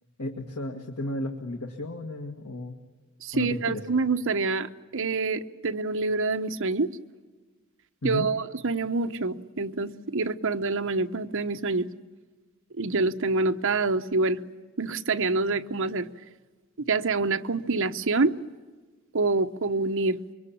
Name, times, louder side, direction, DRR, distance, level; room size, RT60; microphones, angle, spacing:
voice 1, 0.2-2.8 3.3-3.8 8.0-8.3, left 1 dB, 85° left, 3 dB, 1.8 m, -33 dB
voice 2, 3.2-6.9 8.0-11.9 12.8-14.4 14.8-16.1 16.8-18.3 19.1-20.2, right 3 dB, 60° right, 7 dB, 0.9 m, -26 dB
25.5 x 23.5 x 8.7 m, 1.4 s
head